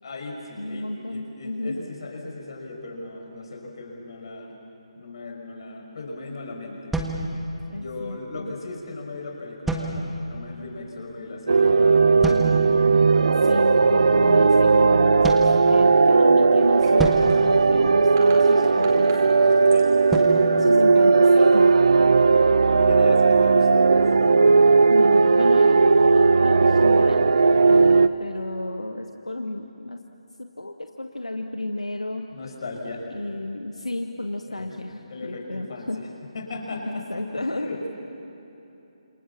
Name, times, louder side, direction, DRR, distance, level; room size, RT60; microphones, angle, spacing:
voice 1, 0.0-4.6 5.0-7.0 7.7-12.1 19.3-20.2 22.7-24.0 32.3-33.2 34.5-34.8 35.1-36.1 36.3-37.9, left 2 dB, 50° left, 1 dB, 5.8 m, -37 dB
voice 2, 0.6-1.8 7.7-8.6 13.4-19.1 20.6-21.8 24.9-25.8 26.0-27.3 27.7-30.0 30.4-32.3 33.1-36.0 36.9-37.7, left 2 dB, 80° left, 5 dB, 1.4 m, -32 dB
sound 1, 6.9-8.0 9.7-10.5 12.2-12.9 15.2-16.3 17.0-18.5 20.1-21.6, right 1 dB, 5° right, 1.5 m, -30 dB
sound 2, 11.5-28.1, right 4 dB, 60° right, 0.9 m, -17 dB
sound 3, 16.6-22.4, right 2 dB, 30° right, 4.6 m, -46 dB
27.5 x 27.5 x 7.3 m, 3.0 s
figure-of-eight pair, 145°, 3 cm